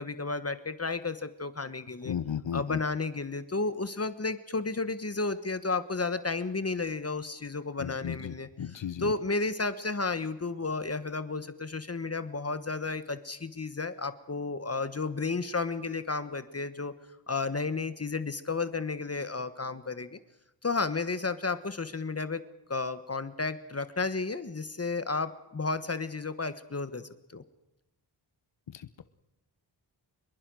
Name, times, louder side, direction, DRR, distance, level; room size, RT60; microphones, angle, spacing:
voice 1, 0.0-2.1 2.5-16.9 17.3-20.2 20.6-22.4 22.7-27.4, left 3 dB, 30° left, 12 dB, 1.4 m, -32 dB
voice 2, 2.0-2.8 7.8-9.1 28.7-29.0, left 8 dB, 70° left, 11 dB, 1.1 m, -35 dB
26.5 x 22.5 x 6.3 m, 0.92 s
wide cardioid pair, 110°, 46 cm